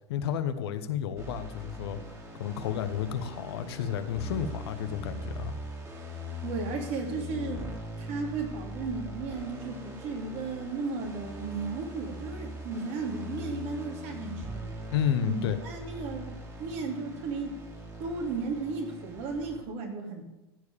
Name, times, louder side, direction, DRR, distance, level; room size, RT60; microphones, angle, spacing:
voice 1, 0.1-2.0 2.3-5.6 14.9-15.6, left 9 dB, 70° left, 10 dB, 1.1 m, -31 dB
sound 1, 1.2-19.6, equal, 20° right, 2.8 m, -41 dB
voice 2, 6.4-7.7 8.0-14.8 15.3-17.6 18.0-20.2, right 4 dB, 50° right, 3 dB, 2.7 m, -35 dB
14.5 x 4.8 x 8.6 m, 1.0 s
hypercardioid pair, 95°, 14 cm